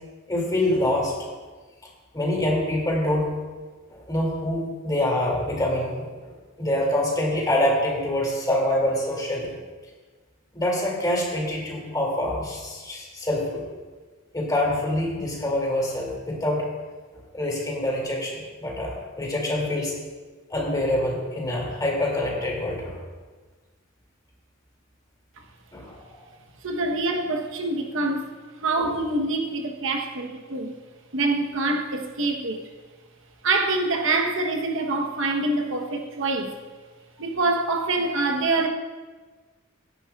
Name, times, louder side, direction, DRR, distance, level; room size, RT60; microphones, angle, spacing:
voice 1, 0.3-1.1 2.1-3.3 3.9-9.5 10.5-13.6 14.3-16.6 17.1-20.0 20.5-23.0 25.7-26.3 28.8-28.9, left 1 dB, 20° left, 2.4 m, -26 dB
voice 2, 26.6-28.3 28.6-30.8 31.1-32.7 33.4-36.6 37.2-38.7, right 2 dB, 65° right, 1.0 m, -25 dB
16.0 x 10.5 x 2.3 m
head